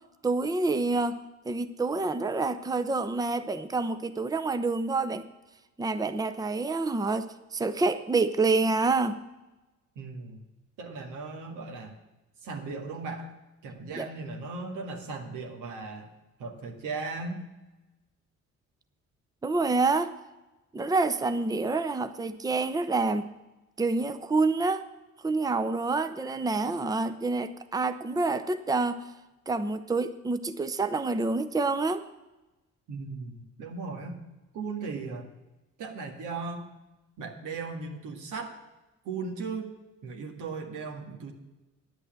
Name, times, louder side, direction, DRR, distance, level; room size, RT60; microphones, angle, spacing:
voice 1, 0.2-1.2 1.5-5.2 5.8-9.2 13.9-14.1 19.4-20.1 20.7-23.3 23.8-24.8 25.2-29.0 29.5-32.1, right 3 dB, 10° right, 10 dB, 0.6 m, -27 dB
voice 2, 10.0-10.4 10.8-12.0 12.4-13.3 13.6-16.1 16.4-17.4 32.9-34.2 34.5-35.3 35.8-36.6 37.2-38.5 39.1-39.7 40.0-41.3, right 4 dB, 85° right, 2 dB, 2.0 m, -37 dB
10.0 x 8.3 x 7.7 m, 1.1 s
cardioid pair, 90°, 30 cm